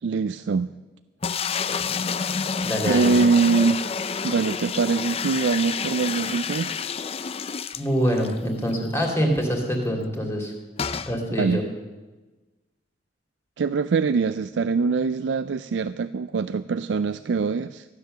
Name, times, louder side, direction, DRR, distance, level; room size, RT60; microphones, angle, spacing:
voice 1, 0.0-0.7 2.8-6.8 11.4-11.6 13.6-17.9, right 4 dB, 75° right, 12 dB, 0.4 m, -23 dB
sound 1, 1.2-8.4 8.7-8.8 9.0-9.1 10.8-11.1, left 6 dB, 30° left, 0.4 m, -29 dB
voice 2, 2.6-3.1 7.8-10.5 11.1-11.6, equal, 15° left, 1 dB, 2.7 m, -25 dB
15.0 x 9.7 x 6.7 m, 1.2 s
head